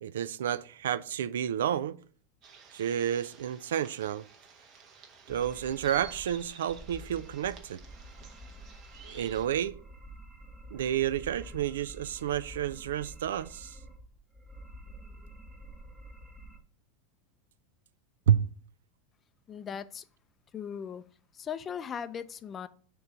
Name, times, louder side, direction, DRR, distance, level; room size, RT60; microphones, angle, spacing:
voice 1, 0.0-2.0 2.7-4.3 5.3-7.8 9.0-9.8 10.7-13.8 18.3-18.5, right 10 dB, 90° right, 0.3 m, -30 dB
sound 1, 2.4-9.5, right 5 dB, 45° right, 1.1 m, -52 dB
sound 2, 5.3-16.6, right 1 dB, 10° right, 0.8 m, -48 dB
voice 2, 19.5-20.0 20.5-21.0 21.3-22.7, left 7 dB, 25° left, 0.4 m, -38 dB
6.4 x 3.1 x 4.9 m
supercardioid pair, 120°, 0 cm